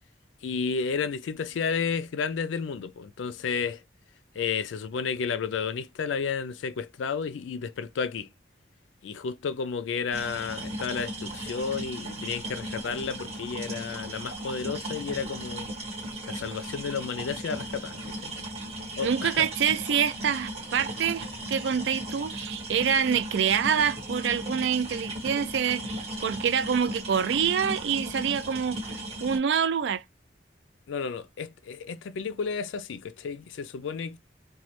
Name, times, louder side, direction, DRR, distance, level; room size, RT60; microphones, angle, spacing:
voice 1, 0.4-3.8 4.3-8.3 9.0-15.7 16.3-18.3 19.0-19.5 30.9-34.2, left 5 dB, 85° left, 0.4 m, -32 dB
sound 1, 10.1-29.4, right 1 dB, 35° right, 1.5 m, -37 dB
voice 2, 19.0-28.8 29.2-30.0, right 7 dB, 70° right, 0.3 m, -26 dB
3.1 x 2.2 x 2.8 m
head